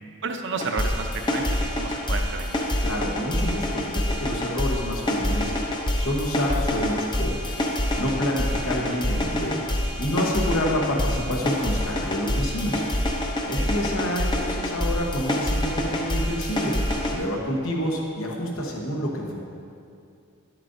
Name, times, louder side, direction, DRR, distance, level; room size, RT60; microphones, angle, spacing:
voice 1, 0.2-2.6 8.9-9.0 13.4-13.7, right 4 dB, 55° right, 5 dB, 0.6 m, -32 dB
sound 1, 0.6-17.2, left 1 dB, 20° left, 0.6 m, -26 dB
voice 2, 2.8-7.6 8.0-9.7 10.0-12.8 13.4-16.8 17.1-19.4, equal, 65° left, -1 dB, 1.1 m, -28 dB
10.5 x 7.5 x 2.6 m, 2.4 s
head